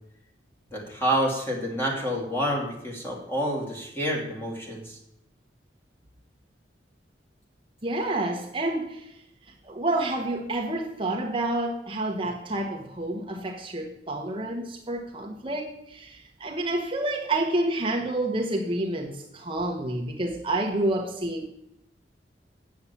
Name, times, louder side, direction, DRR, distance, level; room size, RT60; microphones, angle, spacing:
voice 1, 0.7-5.0, equal, 15° left, -3 dB, 2.7 m, -28 dB
voice 2, 7.8-9.1 9.6-21.5, right 2 dB, 30° right, 1 dB, 0.9 m, -29 dB
8.7 x 7.0 x 8.3 m, 0.82 s
head